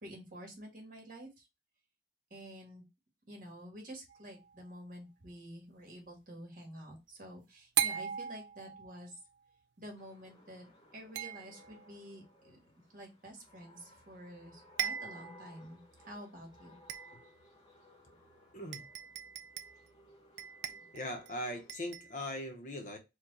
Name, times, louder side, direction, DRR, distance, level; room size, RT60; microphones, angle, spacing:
voice 1, 0.0-1.4 2.3-2.8 3.3-9.1 9.8-10.6 10.9-12.6 12.9-16.7, equal, 50° right, 1.5 m, -49 dB
sound 1, 4.1-4.6 7.8-9.1 11.2-11.9 14.0-14.1 14.4-14.5 14.8-15.4 16.0-16.1 16.9-17.4 18.3-18.4 18.7-19.9 20.4-21.3 21.7-22.2, right 9 dB, 70° right, 0.4 m, -38 dB
sound 2, 9.9-21.7, left 1 dB, 20° left, 1.1 m, -61 dB
voice 2, 18.5-18.8 20.9-23.0, left 1 dB, 45° left, 0.8 m, -40 dB
4.7 x 2.3 x 3.8 m
head